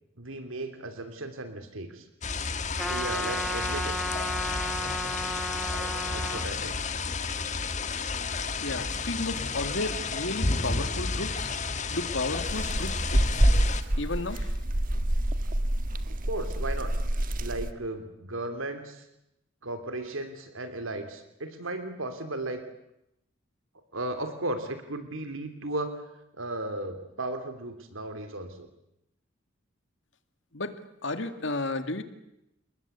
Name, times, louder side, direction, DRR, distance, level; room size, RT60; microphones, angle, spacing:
voice 1, 0.2-2.1 2.8-4.0 6.1-6.8 16.1-16.9 17.4-19.0 19.6-22.6 23.9-26.0 26.3-28.7, right 2 dB, 90° right, 8 dB, 3.2 m, -35 dB
sound 1, 2.2-13.8, left 4 dB, 35° left, 1.5 m, -31 dB
Trumpet, 2.8-6.5, equal, ahead, 1.6 m, -33 dB
voice 2, 8.6-11.6 11.9-13.5 14.0-14.6 30.5-30.8 31.0-32.0, left 2 dB, 65° left, 9 dB, 2.1 m, -33 dB
sound 2, 12.5-17.7, right 1 dB, 45° right, 1.5 m, -27 dB
30.0 x 21.0 x 8.2 m, 0.84 s
head